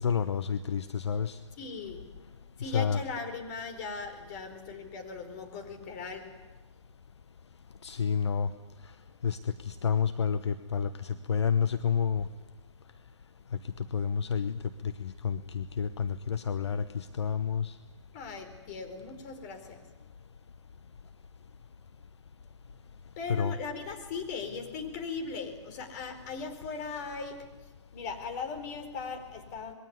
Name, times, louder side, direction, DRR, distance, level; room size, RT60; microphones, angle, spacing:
voice 1, 0.0-1.4 2.6-3.0 7.8-8.5 9.2-12.3 13.8-17.7 23.3-23.6, left 7 dB, 65° left, 11 dB, 1.1 m, -30 dB
voice 2, 1.6-2.0 2.6-6.3 18.1-19.8 23.2-27.5 27.9-29.7, left 5 dB, 35° left, 4 dB, 4.4 m, -38 dB
26.5 x 21.5 x 9.6 m, 1.3 s
figure-of-eight pair, 125°, 16 cm